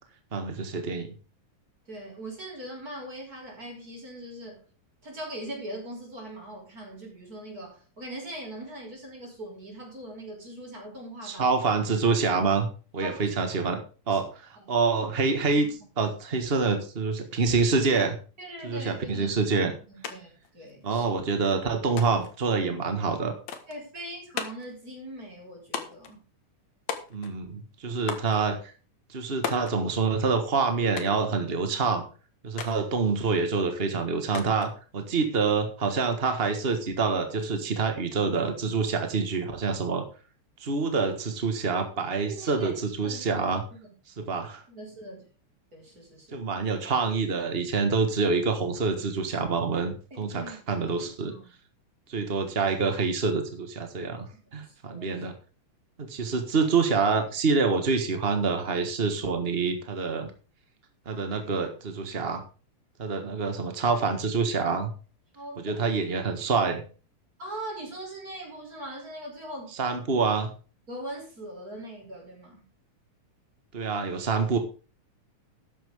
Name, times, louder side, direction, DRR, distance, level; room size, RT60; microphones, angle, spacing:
voice 1, 0.3-1.1 11.2-12.7 12.9-13.8 14.1-15.7 16.0-18.2 18.6-19.7 20.8-23.3 27.1-28.7 29.1-32.1 32.4-40.0 40.6-43.6 44.2-44.6 46.3-51.3 52.1-54.3 54.5-55.3 56.0-60.3 61.0-62.4 63.0-64.9 65.6-66.8 69.8-70.5 73.7-74.6, right 4 dB, 45° right, 7 dB, 0.7 m, -26 dB
voice 2, 1.9-4.6 5.0-11.5 13.0-13.3 14.1-14.2 14.6-14.7 15.5-15.8 18.4-20.3 20.5-21.0 23.7-26.2 42.3-42.7 43.0-43.9 44.7-45.2 45.7-46.4 50.1-51.5 54.3-55.2 65.3-65.9 67.4-69.7 70.9-72.6, right 1 dB, 25° right, 0 dB, 5.7 m, -41 dB
sound 1, 20.0-20.2 20.4-21.2 22.0-22.4 23.5-23.8 24.4-24.7 25.7-26.1 26.9-27.4 28.1-28.4 29.4-29.8 31.0-31.3 32.6-32.8 34.3-34.7, left 7 dB, 60° left, 2.7 m, -35 dB
13.0 x 10.5 x 3.6 m, 0.36 s
omnidirectional pair, 3.8 m